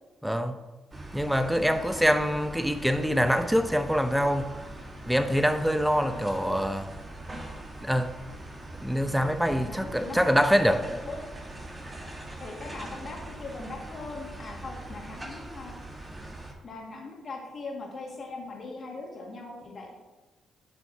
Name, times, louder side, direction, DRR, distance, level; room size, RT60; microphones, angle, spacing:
voice 1, 0.2-0.6 1.1-4.5 5.1-6.9 7.8-8.1 8.8-10.8, equal, 5° right, 9 dB, 0.7 m, -25 dB
sound 1, 0.9-16.5, right 1 dB, 25° right, 1.5 m, -42 dB
voice 2, 1.6-2.2 6.0-6.3 9.5-11.2 12.4-15.8 16.6-20.0, left 3 dB, 45° left, 0 dB, 2.0 m, -40 dB
10.5 x 6.2 x 2.8 m, 1.2 s
figure-of-eight pair, 40°, 0 cm